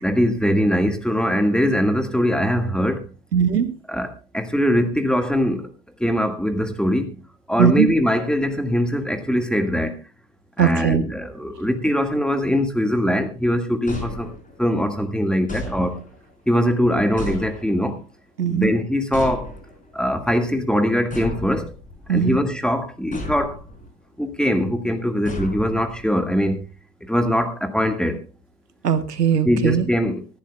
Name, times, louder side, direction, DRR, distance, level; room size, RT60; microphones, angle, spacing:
voice 1, 0.0-3.1 3.9-5.7 6.0-7.2 7.5-10.0 10.6-14.3 14.6-16.0 16.5-18.0 18.5-19.5 19.9-21.7 22.1-23.6 24.2-26.6 27.1-28.2 29.4-30.4, equal, ahead, 1.7 m, -22 dB
voice 2, 3.3-3.7 7.6-7.9 10.6-11.0 18.4-18.7 22.1-22.4 28.8-29.8, right 8 dB, 85° right, 1.3 m, -19 dB
sound 1, 13.9-14.8 15.5-16.3 17.2-18.0 19.1-19.9 21.1-22.1 23.1-23.9 25.3-26.2, left 2 dB, 15° left, 4.9 m, -34 dB
24.5 x 11.5 x 2.3 m
figure-of-eight pair, 85°, 47 cm